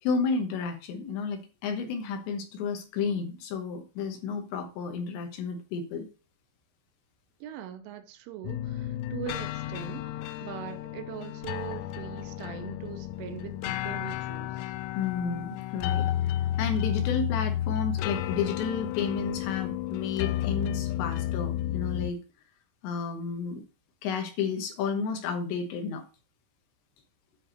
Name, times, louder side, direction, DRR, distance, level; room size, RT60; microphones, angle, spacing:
voice 1, 0.0-6.1 14.9-22.2 22.8-23.6 24.0-26.0, left 5 dB, 75° left, 2.9 m, -32 dB
voice 2, 7.4-14.7, right 11 dB, 80° right, 3.2 m, -41 dB
sound 1, 8.4-22.1, left 13 dB, 90° left, 3.3 m, -32 dB
10.0 x 4.3 x 6.4 m
omnidirectional pair, 5.9 m